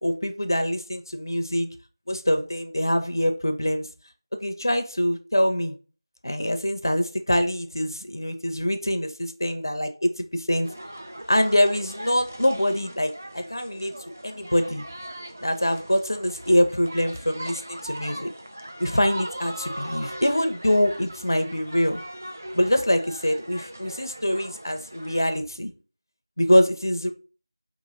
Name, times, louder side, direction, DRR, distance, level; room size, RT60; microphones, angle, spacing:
voice 1, 0.0-1.7 2.1-3.9 4.4-5.7 6.2-10.7 11.3-13.9 14.2-14.8 15.4-18.3 18.8-22.0 22.5-25.7 26.4-27.1, equal, 55° left, 0.5 m, -24 dB
sound 1, 10.6-25.4, right 1 dB, 30° right, 0.3 m, -39 dB
3.5 x 3.0 x 3.9 m
figure-of-eight pair, 175°, 2 cm